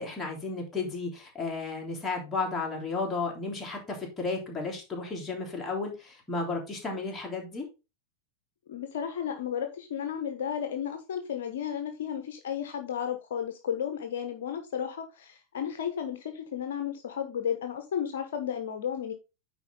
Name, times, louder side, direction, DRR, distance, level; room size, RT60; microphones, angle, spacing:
voice 1, 0.0-7.7, left 3 dB, 15° left, -1 dB, 3.3 m, -33 dB
voice 2, 8.7-19.1, left 8 dB, 60° left, 7 dB, 1.1 m, -33 dB
9.6 x 4.6 x 3.7 m, 0.27 s
figure-of-eight pair, 90°, 0 cm